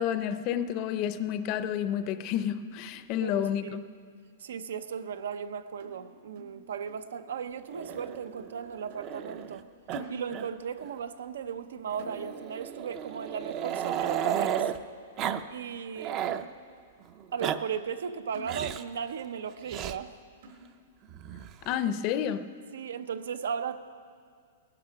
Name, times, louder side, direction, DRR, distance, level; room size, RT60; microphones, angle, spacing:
voice 1, 0.0-3.8 21.6-22.4, left 9 dB, 30° left, 12 dB, 0.5 m, -30 dB
voice 2, 3.2-3.8 4.4-9.7 10.1-14.7 15.5-16.3 17.3-20.1 22.7-23.8, right 7 dB, 85° right, 12 dB, 0.8 m, -36 dB
sound 1, 5.8-7.1 7.4-7.6 7.9-8.6 8.9-9.1 9.4-10.7 11.0-11.2 11.5-11.7 12.0-12.7 13.0-13.2 13.5-13.7 14.0-14.7 15.1-15.2 15.7-15.8 16.2-16.9 17.3-17.4 17.8-18.0 18.3-19.1 19.4-19.5 19.9-20.0 20.4-21.0 21.5-21.6 21.9-22.1, right 1 dB, 60° right, 2.9 m, -49 dB
Growling, 7.7-9.6 9.9-10.0 10.3-10.5 10.8-10.9 11.9-14.8 15.2-15.4 15.7-16.4 17.2-17.6 18.4-18.9 19.7-20.0 21.1-21.8, right 9 dB, 25° right, 0.5 m, -33 dB
19.5 x 11.0 x 5.9 m, 2.1 s
supercardioid pair, 165°, 0 cm